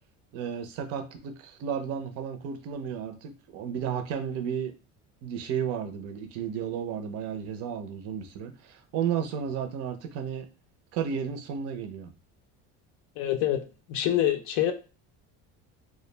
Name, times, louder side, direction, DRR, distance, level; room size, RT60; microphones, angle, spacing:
voice 1, 0.3-4.7 5.2-10.5 10.9-12.1, right 8 dB, 50° right, 6 dB, 0.5 m, -33 dB
voice 2, 13.2-13.6 13.9-14.7, left 12 dB, 70° left, 6 dB, 0.5 m, -25 dB
2.2 x 2.1 x 3.1 m, 0.34 s
cardioid pair, 150°, 32 cm